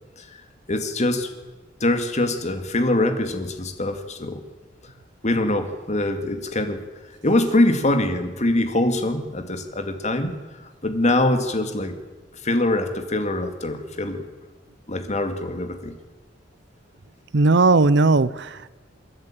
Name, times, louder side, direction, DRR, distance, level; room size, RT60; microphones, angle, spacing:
voice 1, 0.7-1.3 1.8-4.4 5.2-6.8 7.2-10.4 10.8-12.0 12.4-14.3 14.9-16.0, left 1 dB, 40° left, 7 dB, 2.2 m, -23 dB
voice 2, 17.3-18.7, right 3 dB, 65° right, 18 dB, 0.7 m, -17 dB
28.0 x 11.0 x 9.0 m, 1.2 s
head